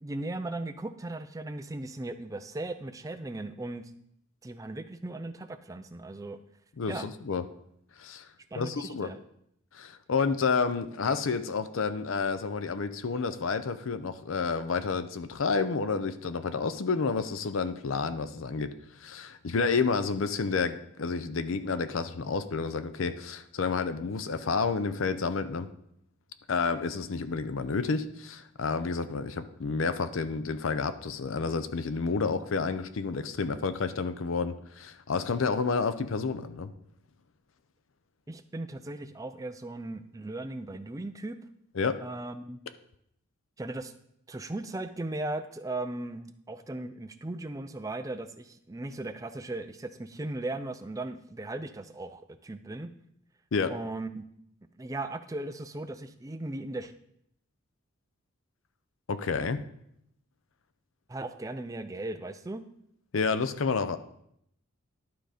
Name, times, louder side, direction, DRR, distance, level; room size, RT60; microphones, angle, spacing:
voice 1, 0.0-3.9 4.4-6.4 6.9-7.1 8.5-9.2 38.3-41.4 42.0-42.6 43.6-43.9 44.3-52.9 53.7-54.3 54.7-56.9 61.1-62.6, right 2 dB, 15° right, 9 dB, 0.4 m, -37 dB
voice 2, 6.8-7.4 8.0-8.2 8.6-9.1 9.7-18.7 19.0-25.7 26.5-36.7 41.8-42.0 53.5-53.7 59.1-59.6 63.1-64.0, left 4 dB, 65° left, 11 dB, 0.5 m, -30 dB
11.5 x 3.8 x 5.0 m, 0.74 s
head